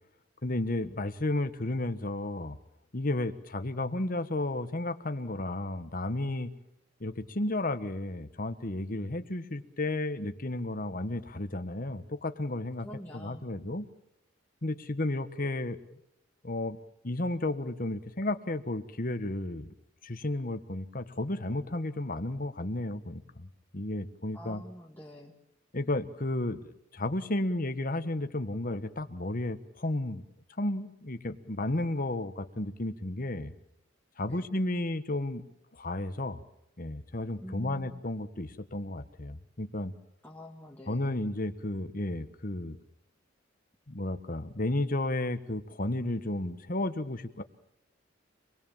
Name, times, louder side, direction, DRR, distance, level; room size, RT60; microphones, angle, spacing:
voice 1, 0.4-2.6 2.9-6.5 7.0-12.9 13.1-13.9 14.6-15.8 16.4-16.8 17.0-19.7 20.0-24.6 25.7-30.2 30.6-33.5 34.2-35.4 35.7-36.4 36.8-39.9 40.9-42.8 43.9-47.4, left 2 dB, 45° left, 9 dB, 1.4 m, -33 dB
voice 2, 12.8-13.5 24.3-25.4 34.3-34.5 37.4-38.0 40.2-41.3, equal, 10° left, -2 dB, 1.9 m, -46 dB
26.0 x 20.0 x 7.3 m, 0.83 s
head